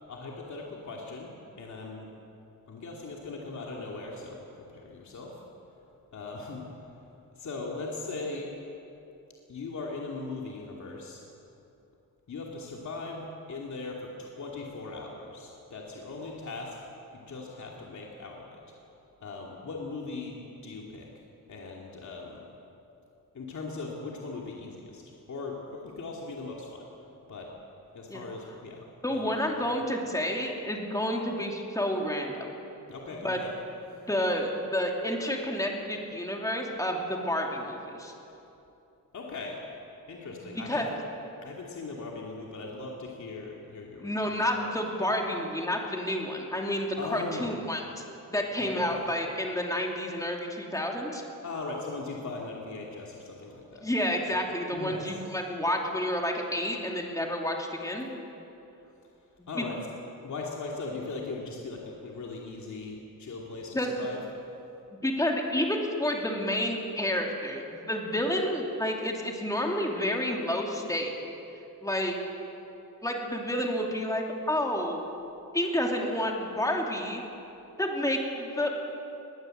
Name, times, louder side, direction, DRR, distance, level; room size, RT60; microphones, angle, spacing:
voice 1, 0.1-2.1 2.7-5.4 6.1-6.9 7.4-8.6 9.5-11.2 12.3-16.8 17.1-18.6 19.2-20.4 20.6-21.2 21.5-22.4 23.3-26.9 27.3-27.5 27.9-29.3 29.6-29.7 32.9-33.5 33.9-34.0 39.1-39.6 40.1-41.0 41.4-44.1 44.5-44.7 47.0-47.5 48.6-49.0 51.4-53.8 54.7-55.2 59.5-59.8 60.2-64.2, left 3 dB, 55° left, -2 dB, 2.7 m, -39 dB
voice 2, 29.0-32.5 33.2-33.4 34.1-38.1 40.4-40.9 44.0-48.0 48.3-51.2 53.8-58.1 59.4-59.6 63.7-63.9 65.0-71.1 71.8-72.1 73.0-75.0 75.5-77.2 77.8-78.9, left 1 dB, 10° left, 0 dB, 2.9 m, -30 dB
21.0 x 19.0 x 7.8 m, 2.9 s
wide cardioid pair, 135°, 35 cm